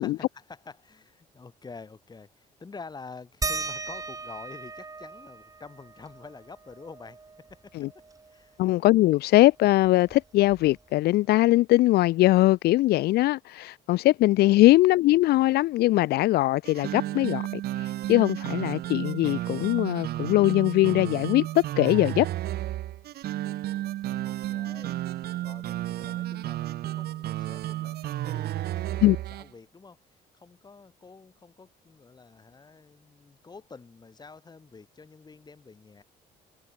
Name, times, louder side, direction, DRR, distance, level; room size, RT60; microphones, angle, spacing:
voice 1, 0.0-8.6 14.4-14.7 23.8-25.0 25.4-30.0 30.3-36.0, left 4 dB, 25° left, 5.7 m, -48 dB
sound 1, 3.4-8.5 8.9-9.0 9.3-11.1 12.3-12.4 13.2-13.3, right 4 dB, 20° right, 2.0 m, -38 dB
voice 2, 8.6-22.3 29.0-29.2, left 17 dB, 75° left, 0.6 m, -21 dB
sound 2, 16.7-29.5, right 14 dB, 70° right, 1.6 m, -32 dB
cardioid pair, 110°, 17 cm